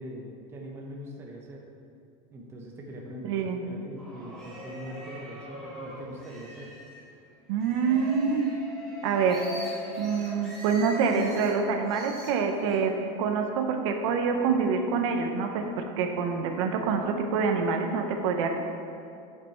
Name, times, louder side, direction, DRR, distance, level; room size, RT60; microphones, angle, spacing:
voice 1, 0.0-1.7 2.3-6.7, equal, 15° right, -1 dB, 0.6 m, -42 dB
voice 2, 3.2-3.6 7.5-8.5 9.0-9.5 10.0-18.5, right 5 dB, 60° right, 4 dB, 0.8 m, -26 dB
sound 1, 4.0-7.0 7.6-11.5 11.9-12.8, left 1 dB, ahead, 1.8 m, -41 dB
9.0 x 5.5 x 4.4 m, 2.5 s
supercardioid pair, 170°, 17 cm